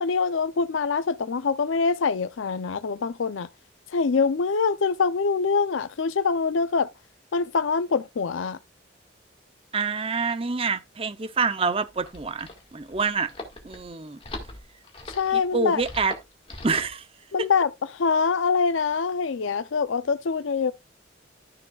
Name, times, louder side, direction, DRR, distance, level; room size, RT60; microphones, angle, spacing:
voice 1, 0.0-3.5 3.9-6.9 7.3-8.6 15.2-15.8 17.3-20.7, left 5 dB, 85° left, 0.5 m, -24 dB
voice 2, 9.7-13.3 13.6-14.2 15.3-16.1 16.6-17.0 17.4-17.5, right 4 dB, 30° right, 0.6 m, -27 dB
sound 1, 11.8-17.0, left 2 dB, 30° left, 1.7 m, -41 dB
13.0 x 6.4 x 2.3 m
head